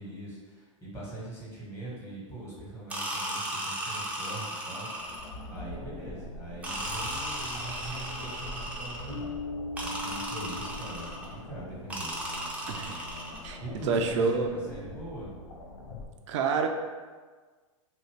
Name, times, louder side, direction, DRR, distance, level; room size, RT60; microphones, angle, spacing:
voice 1, 0.0-4.9 5.2-9.3 9.8-12.1 13.6-15.3, right 2 dB, 15° left, -7 dB, 1.2 m, -42 dB
sound 1, 2.9-5.5 6.6-9.2 9.8-11.3 11.9-13.5, right 1 dB, 10° right, 0.5 m, -36 dB
sound 2, 4.9-16.1, left 1 dB, 45° left, 0.5 m, -44 dB
Bass guitar, 9.1-11.5, left 2 dB, 85° left, 0.7 m, -40 dB
voice 2, 12.7-13.1 13.4-13.6 13.9-14.5 16.3-16.7, right 5 dB, 65° right, 4 dB, 0.4 m, -27 dB
2.7 x 2.5 x 3.1 m, 1.4 s
hypercardioid pair, 105°, 17 cm